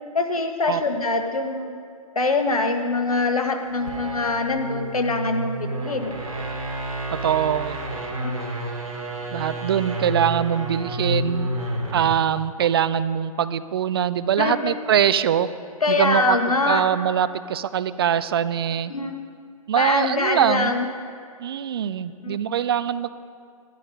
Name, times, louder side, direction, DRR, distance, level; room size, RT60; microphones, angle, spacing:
voice 1, 0.1-1.8 2.1-6.2 8.2-8.3 14.4-14.7 15.8-16.8 18.9-19.2 19.8-20.9 22.2-22.4, left 3 dB, 70° left, 5 dB, 1.4 m, -24 dB
sound 1, 3.7-12.2, right 1 dB, 65° right, 2.8 m, -30 dB
voice 2, 7.1-7.8 9.3-11.5 11.9-15.5 15.9-18.9 19.7-20.7 21.4-23.1, right 9 dB, 40° right, 14 dB, 0.5 m, -23 dB
12.5 x 11.0 x 5.2 m, 2.3 s
figure-of-eight pair, 125°, 19 cm